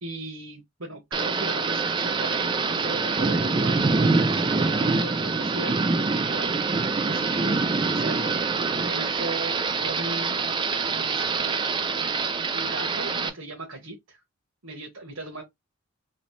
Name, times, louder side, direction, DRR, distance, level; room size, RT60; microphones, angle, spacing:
voice 1, 0.0-5.8 6.1-10.4 10.9-11.8 12.5-14.2 14.6-15.4, right 2 dB, 90° right, 1.2 m, -38 dB
Thunder / Rain, 1.1-13.3, right 4 dB, 25° right, 0.4 m, -25 dB
3.0 x 3.0 x 3.1 m
head